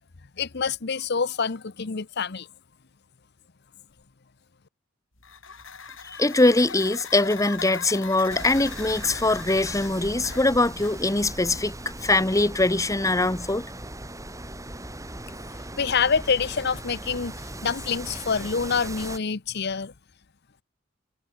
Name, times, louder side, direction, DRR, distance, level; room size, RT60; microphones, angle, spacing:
voice 1, 0.4-2.5 15.8-17.3 17.6-19.9, left 5 dB, 55° left, 0.9 m, -26 dB
sound 1, 5.2-11.4, left 5 dB, 80° left, 7.9 m, -40 dB
voice 2, 6.2-11.7 12.0-13.6, left 2 dB, 15° left, 1.0 m, -22 dB
sound 2, 8.3-19.2, right 1 dB, 15° right, 4.9 m, -38 dB
head